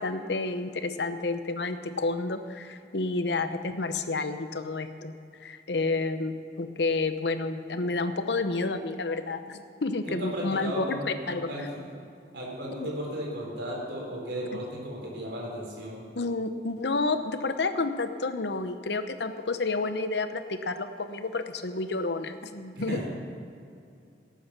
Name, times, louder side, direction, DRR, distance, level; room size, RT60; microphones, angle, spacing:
voice 1, 0.0-5.1 5.4-11.7 12.8-12.9 16.2-23.1, left 3 dB, 75° left, 9 dB, 0.9 m, -30 dB
voice 2, 10.0-11.7 12.3-16.0 22.8-23.1, equal, 75° right, -2 dB, 4.2 m, -35 dB
18.0 x 8.6 x 6.0 m, 2.5 s
head